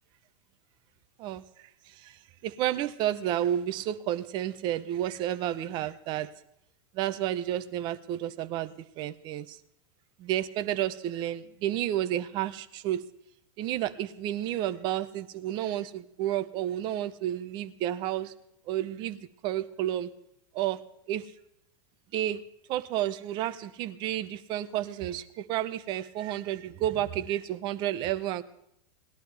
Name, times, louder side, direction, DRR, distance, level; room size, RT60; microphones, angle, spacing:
voice 1, 1.2-2.2 2.4-6.3 6.9-9.6 10.2-13.0 13.6-18.3 18.7-20.1 20.5-20.8 21.1-21.3 22.1-22.4 22.7-28.4, right 12 dB, 35° right, 11 dB, 0.8 m, -31 dB
19.5 x 11.5 x 3.4 m, 0.76 s
supercardioid pair, 155°, 13 cm